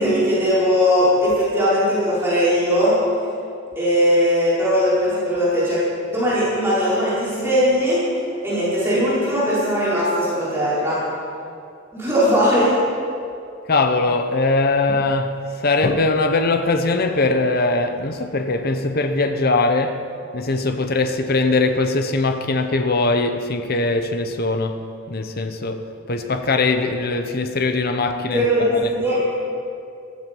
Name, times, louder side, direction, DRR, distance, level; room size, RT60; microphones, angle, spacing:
voice 1, 0.0-3.0 3.7-8.0 8.4-11.1 11.9-12.7 28.3-29.4, equal, 10° right, 4.9 m, -19 dB
voice 2, 13.7-15.4 15.6-20.0 20.3-24.8 25.1-25.8 26.1-28.5 28.7-28.8, left 3 dB, 50° left, 0.8 m, -21 dB
15.0 x 14.0 x 5.5 m
head